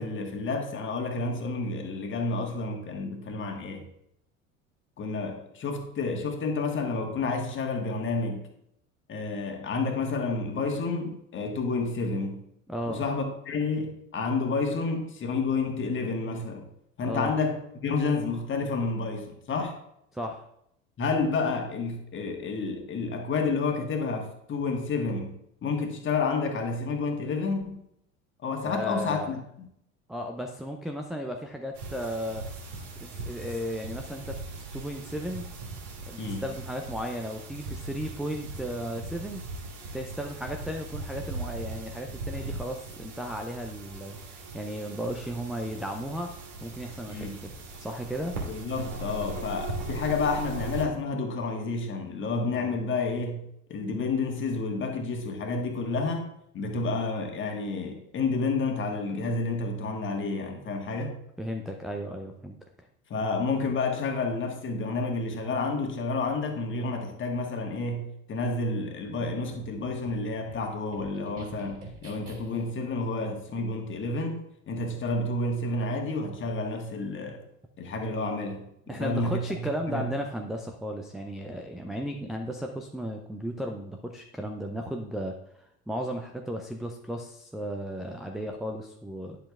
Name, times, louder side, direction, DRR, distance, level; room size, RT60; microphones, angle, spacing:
voice 1, 0.0-3.9 5.0-8.5 9.1-12.4 12.9-16.7 17.0-17.6 17.8-19.8 21.0-27.8 28.4-29.7 36.2-36.4 47.1-47.4 48.5-61.2 63.1-77.4 77.8-80.1, left 3 dB, 30° left, 1.4 m, -30 dB
voice 2, 12.7-13.0 17.0-17.3 20.1-20.5 28.6-29.3 30.1-32.4 33.0-34.4 34.7-35.4 36.1-39.4 39.9-46.3 46.6-47.3 47.8-48.3 52.5-52.7 61.4-62.6 78.9-89.4, equal, ahead, 0.3 m, -35 dB
sound 1, 31.7-50.9, right 2 dB, 60° right, 2.3 m, -39 dB
sound 2, 69.1-72.8, right 2 dB, 35° right, 2.9 m, -47 dB
10.5 x 7.1 x 2.3 m
figure-of-eight pair, 70°, 41 cm